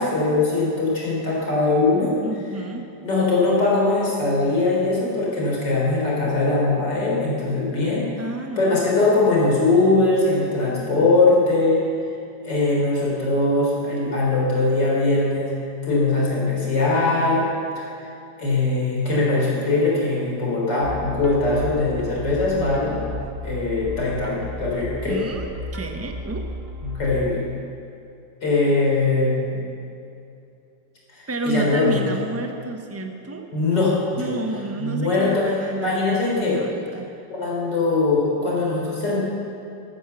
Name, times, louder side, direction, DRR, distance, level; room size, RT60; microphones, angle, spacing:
voice 1, 0.0-2.1 3.0-8.1 8.6-11.8 12.4-15.6 15.8-17.5 17.8-17.9 18.4-23.0 23.4-25.2 26.8-27.4 28.4-29.6 31.1-32.0 33.5-34.4 34.8-35.5 35.8-36.6 37.3-39.2, left 3 dB, 70° left, -4 dB, 4.6 m, -21 dB
voice 2, 2.2-2.9 8.2-9.2 25.0-26.5 31.3-33.5 34.2-36.0 36.3-37.1, right 2 dB, 10° right, 4 dB, 0.8 m, -30 dB
sound 1, 20.8-27.3, equal, 35° right, 1.6 m, -34 dB
13.5 x 13.0 x 7.0 m, 2.6 s
omnidirectional pair, 1.9 m